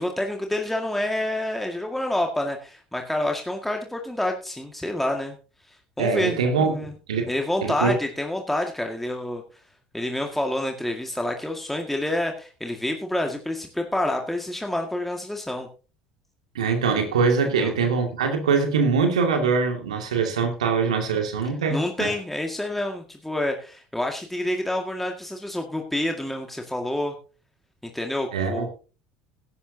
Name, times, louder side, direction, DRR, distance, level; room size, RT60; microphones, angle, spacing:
voice 1, 0.0-5.4 6.0-6.9 7.3-9.4 9.9-15.7 17.6-17.7 21.7-27.1 27.8-28.7, left 1 dB, 5° left, 2.0 m, -28 dB
voice 2, 6.0-7.3 7.6-8.0 16.5-22.1 28.3-28.7, right 5 dB, 80° right, 2.3 m, -23 dB
17.0 x 11.0 x 2.8 m
hypercardioid pair, 65°, 3 cm